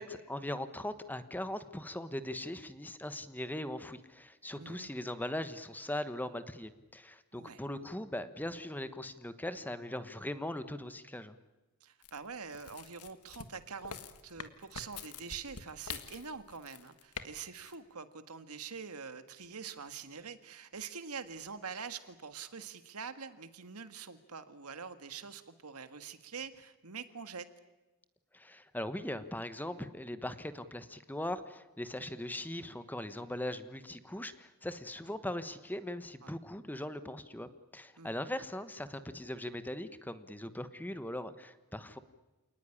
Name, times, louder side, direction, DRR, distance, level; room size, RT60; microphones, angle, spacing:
voice 1, 0.0-11.4 28.3-42.0, left 1 dB, 10° left, 12 dB, 1.2 m, -40 dB
voice 2, 4.6-4.9 7.3-7.6 11.8-27.5 36.2-36.3 38.0-38.1, right 6 dB, 80° right, 10 dB, 1.8 m, -45 dB
sound 1, 12.0-17.3 17.5-17.8, left 7 dB, 85° left, 1.8 m, -45 dB
28.0 x 19.0 x 10.0 m, 1.1 s
head